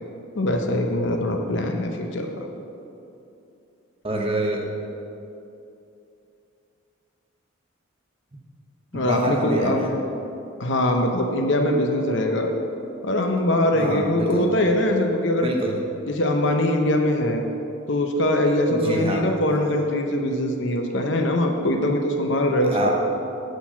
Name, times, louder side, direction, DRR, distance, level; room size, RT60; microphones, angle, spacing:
voice 1, 0.4-2.5 8.9-9.8 10.6-12.5 13.0-15.5 16.1-17.4 17.9-22.9, left 1 dB, 65° left, 3 dB, 0.7 m, -22 dB
voice 2, 4.0-4.7 8.3-8.4 8.9-9.9 13.8-14.5 15.4-15.8 18.7-19.2 22.6-22.9, right 2 dB, 30° right, 0 dB, 0.7 m, -26 dB
8.0 x 4.4 x 7.0 m, 2.8 s
head